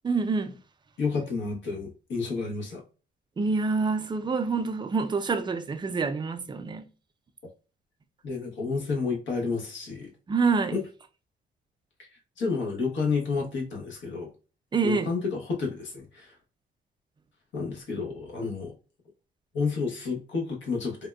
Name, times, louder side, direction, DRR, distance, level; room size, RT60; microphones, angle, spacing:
voice 1, 0.0-0.6 3.4-6.8 10.3-10.8 14.7-15.1, right 4 dB, 25° right, 0.4 m, -26 dB
voice 2, 1.0-2.8 8.2-10.1 10.7-10.8 12.4-14.3 14.8-16.3 17.5-18.7 19.5-21.1, left 4 dB, 70° left, 1.0 m, -30 dB
3.5 x 2.2 x 2.2 m
cardioid pair, 90°, 20 cm